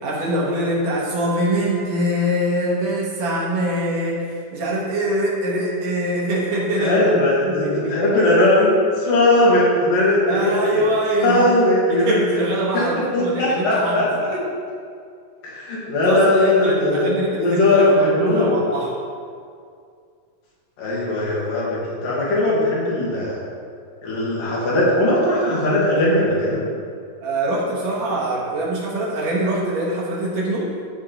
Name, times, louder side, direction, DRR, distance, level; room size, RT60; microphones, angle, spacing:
voice 1, 0.0-4.2 4.5-7.0 7.4-8.1 10.3-11.5 11.9-14.0 14.3-14.4 16.0-18.9 27.2-30.7, right 1 dB, 60° right, -5 dB, 2.3 m, -23 dB
voice 2, 6.8-10.8 11.2-12.2 13.0-14.4 15.4-18.5 20.8-23.4 24.0-26.6, left 1 dB, 90° left, -6 dB, 3.6 m, -19 dB
13.0 x 4.4 x 3.9 m, 2.3 s
omnidirectional pair, 3.8 m